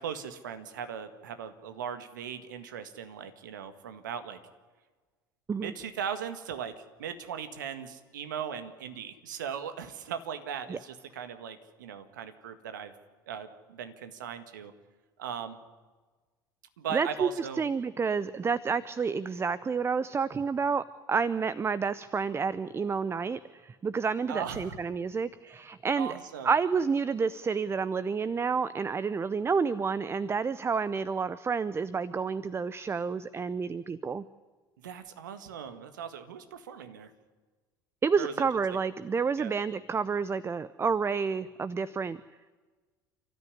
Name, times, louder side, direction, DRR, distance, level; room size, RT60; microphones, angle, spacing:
voice 1, 0.0-4.4 5.6-12.9 13.3-14.7 15.2-15.6 16.8-17.6 24.3-24.8 26.0-26.5 34.8-37.1 38.2-38.3 39.4-39.5, right 8 dB, 75° right, 10 dB, 1.7 m, -38 dB
voice 2, 16.9-26.1 26.4-34.2 38.0-42.2, right 5 dB, 25° right, 17 dB, 0.7 m, -29 dB
29.5 x 13.5 x 9.8 m, 1.4 s
figure-of-eight pair, 65°, 10 cm